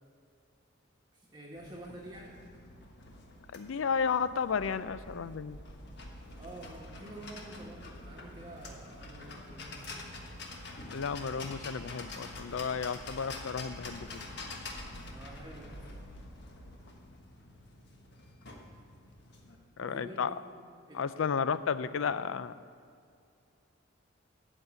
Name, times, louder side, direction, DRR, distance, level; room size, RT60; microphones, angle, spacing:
voice 1, 1.1-2.4 6.4-9.8 15.1-16.0 19.8-20.3 20.9-21.4, right 1 dB, 20° right, -4 dB, 1.2 m, -48 dB
sound 1, 1.6-19.6, left 2 dB, 55° left, 1.3 m, -46 dB
voice 2, 3.5-5.6 10.9-14.2 19.8-20.3 20.9-22.5, left 6 dB, 80° left, 14 dB, 0.4 m, -33 dB
12.5 x 5.3 x 8.1 m, 2.3 s
head